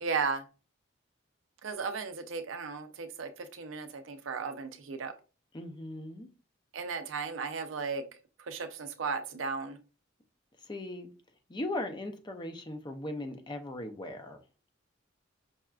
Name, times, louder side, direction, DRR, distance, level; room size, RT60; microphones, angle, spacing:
voice 1, 0.0-0.4 1.6-5.1 6.7-8.1 8.5-9.8, right 5 dB, 70° right, 0.5 m, -35 dB
voice 2, 5.5-6.3 10.6-11.1 11.5-14.4, left 1 dB, 20° left, 0.5 m, -38 dB
5.4 x 2.3 x 2.3 m
head